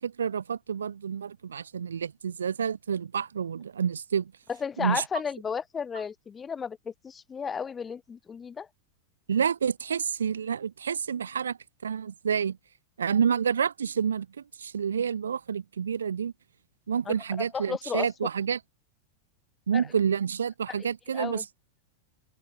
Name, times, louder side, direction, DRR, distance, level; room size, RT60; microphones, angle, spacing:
voice 1, 0.0-4.3 4.8-5.0 9.3-12.6 13.0-14.3 14.6-16.3 16.9-18.6 19.7-21.4, right 7 dB, 70° right, 0.3 m, -28 dB
voice 2, 4.5-8.7 17.1-18.1 19.7-19.9 21.1-21.4, left 6 dB, 20° left, 1.0 m, -34 dB
figure-of-eight pair, 90°, 0 cm